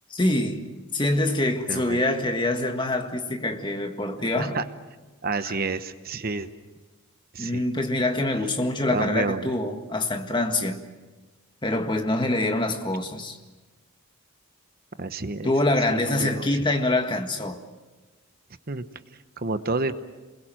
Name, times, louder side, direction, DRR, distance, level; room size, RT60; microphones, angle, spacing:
voice 1, 0.1-4.6 5.5-5.6 7.4-10.8 11.6-13.4 15.4-17.6, left 2 dB, 20° left, 5 dB, 1.7 m, -25 dB
voice 2, 1.7-2.0 4.4-4.6 5.2-6.5 7.3-7.6 8.9-9.5 15.0-15.5 15.9-16.5 18.7-18.8 19.4-19.9, right 3 dB, 45° right, 11 dB, 0.9 m, -29 dB
28.5 x 22.0 x 7.6 m, 1.2 s
head